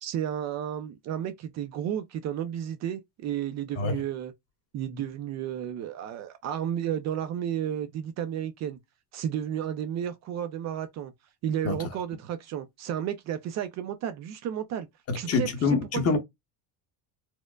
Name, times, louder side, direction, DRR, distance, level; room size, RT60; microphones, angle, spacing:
voice 1, 0.0-4.3 4.7-8.8 9.1-11.1 11.4-14.9 15.1-15.8, right 10 dB, 40° right, 0.5 m, -32 dB
voice 2, 15.1-16.2, left 4 dB, 35° left, 1.0 m, -25 dB
4.3 x 2.1 x 2.3 m
cardioid pair, 165°, 41 cm